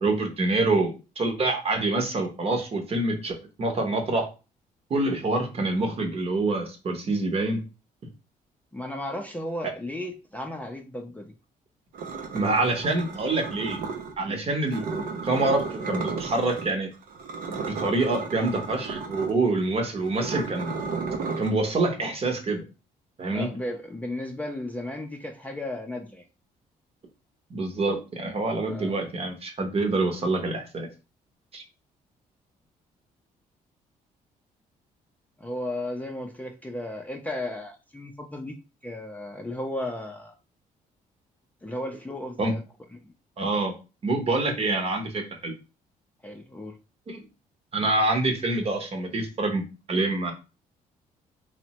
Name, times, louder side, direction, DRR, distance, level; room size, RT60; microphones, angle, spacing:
voice 1, 0.0-4.3 4.9-7.6 12.3-13.8 14.2-14.9 15.2-16.9 17.5-20.7 21.4-22.6 23.2-23.5 27.5-30.9 31.5-31.6 42.4-42.5 43.4-43.7 44.0-45.5 47.1-47.2 47.7-50.3, right 2 dB, 40° right, 3 dB, 0.8 m, -26 dB
voice 2, 8.7-11.3 23.3-26.2 28.7-28.9 35.4-38.5 38.8-40.3 41.6-42.6 42.9-43.1 46.2-46.7, left 1 dB, 10° left, 2 dB, 0.4 m, -34 dB
sound 1, 11.9-14.1 14.7-16.7 17.0-21.5, right 4 dB, 70° right, 0.6 m, -34 dB
3.1 x 2.1 x 2.9 m, 0.31 s
cardioid pair, 95°, 15 cm